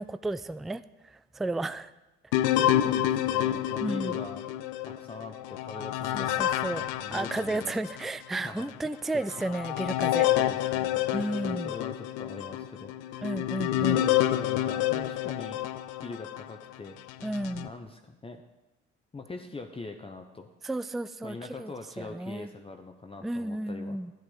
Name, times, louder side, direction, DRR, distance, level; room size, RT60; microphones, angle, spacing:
voice 1, 0.0-1.9 3.8-4.2 6.1-6.8 7.1-10.3 11.1-11.7 13.2-14.0 17.2-17.7 20.6-21.7 22.0-22.5 23.2-24.1, right 2 dB, ahead, 15 dB, 0.3 m, -33 dB
sound 1, 2.3-8.1 8.6-8.7 9.3-16.5 17.1-17.7, left 13 dB, 70° left, 0.6 m, -28 dB
voice 2, 2.5-4.4 4.8-7.8 8.4-8.9 10.3-11.0 11.4-13.2 13.8-15.6 16.0-17.0 17.6-18.4 19.1-20.5 21.2-24.0, left 3 dB, 20° left, 4 dB, 0.9 m, -42 dB
12.5 x 10.5 x 4.0 m, 1.0 s
hypercardioid pair, 55°, 31 cm